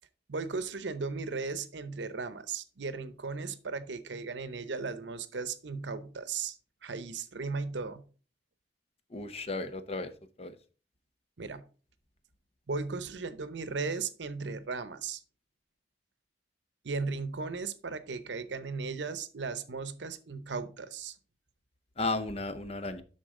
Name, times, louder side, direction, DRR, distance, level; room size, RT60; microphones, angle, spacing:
voice 1, 0.3-6.6 6.8-8.0 11.4-11.6 12.7-15.2 16.8-21.2, right 4 dB, 90° right, 0.8 m, -36 dB
voice 2, 9.1-10.1 10.4-10.5 22.0-23.0, left 2 dB, 35° left, 0.7 m, -34 dB
11.5 x 4.0 x 3.7 m
head